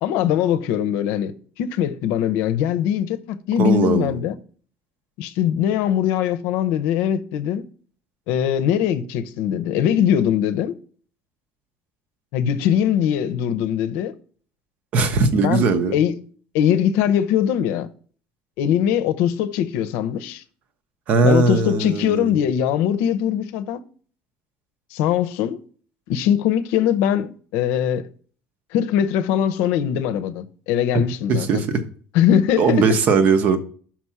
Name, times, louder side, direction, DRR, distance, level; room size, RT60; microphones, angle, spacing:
voice 1, 0.0-1.3 1.6-4.4 5.2-7.6 8.3-10.8 12.3-14.1 15.4-16.2 16.5-17.9 18.6-20.4 21.2-23.8 24.9-25.6 26.1-28.1 28.7-31.5 32.1-32.8, left 9 dB, 80° left, 0.6 m, -21 dB
voice 2, 3.6-4.2 14.9-16.0 21.1-22.4 31.3-31.8 32.6-33.6, right 4 dB, 40° right, 0.7 m, -19 dB
5.9 x 4.8 x 5.6 m
cardioid pair, 180°, 4 cm